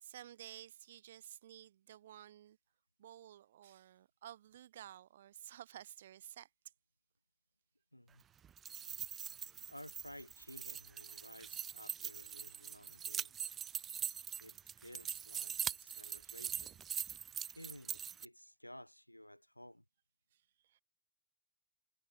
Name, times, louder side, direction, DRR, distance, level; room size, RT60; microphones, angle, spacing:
voice 1, 0.0-2.6 3.0-6.5 16.2-16.3 20.3-20.8, right 11 dB, 60° right, 1.2 m, -53 dB
voice 2, 7.9-8.2 8.8-9.1 9.7-13.3 14.4-16.9 17.5-19.8, left 1 dB, 90° left, 1.5 m, -55 dB
sound 1, 8.4-18.3, right 9 dB, 25° right, 0.5 m, -43 dB
figure-of-eight pair, 90°, 0 cm